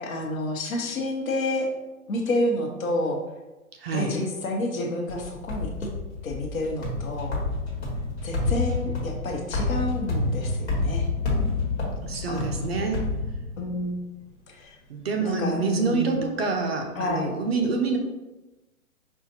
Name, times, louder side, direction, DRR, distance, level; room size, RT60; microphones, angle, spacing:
voice 1, 0.0-1.7 2.1-3.2 3.9-5.9 6.2-7.4 8.2-11.1 12.3-12.8 13.6-14.0 14.5-14.8 15.2-16.2 17.0-17.3, left 1 dB, 65° left, 1 dB, 1.0 m, -29 dB
voice 2, 3.8-4.1 12.0-13.0 14.9-18.0, right 4 dB, 45° right, 2 dB, 0.5 m, -26 dB
sound 1, 5.1-13.9, left 3 dB, 45° left, 1.3 m, -29 dB
5.4 x 2.4 x 2.8 m, 1.1 s
hypercardioid pair, 160°, 44 cm